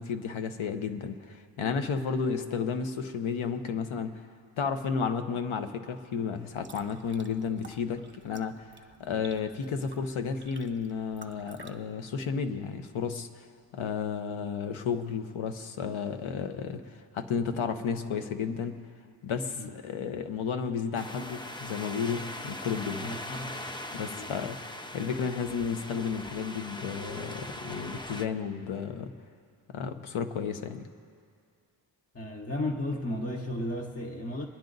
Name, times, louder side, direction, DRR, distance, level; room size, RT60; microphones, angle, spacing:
voice 1, 0.0-4.2 4.6-8.6 9.0-13.5 13.7-18.8 19.2-23.1 23.9-24.6 24.9-29.1 29.7-30.9, left 6 dB, 85° left, 8 dB, 1.0 m, -32 dB
sound 1, 6.5-11.7, right 4 dB, 25° right, 1.0 m, -53 dB
sound 2, 20.9-28.3, left 1 dB, 10° left, 0.5 m, -40 dB
voice 2, 22.8-23.7 24.0-24.3 32.1-34.5, left 1 dB, 30° left, 1 dB, 0.9 m, -34 dB
24.0 x 10.5 x 4.0 m, 2.2 s
wide cardioid pair, 135°, 47 cm